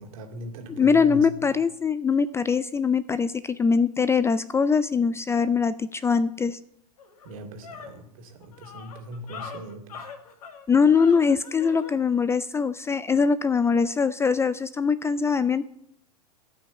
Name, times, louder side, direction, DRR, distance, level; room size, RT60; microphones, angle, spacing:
voice 1, 0.0-1.3 7.2-10.1, equal, 60° right, 2.4 m, -40 dB
voice 2, 0.8-6.6 10.7-15.7, left 5 dB, 15° left, 0.4 m, -22 dB
sound 1, 6.5-6.6 7.0-12.0, left 5 dB, 65° left, 2.2 m, -42 dB
13.0 x 6.0 x 8.3 m
hypercardioid pair, 95°, 20 cm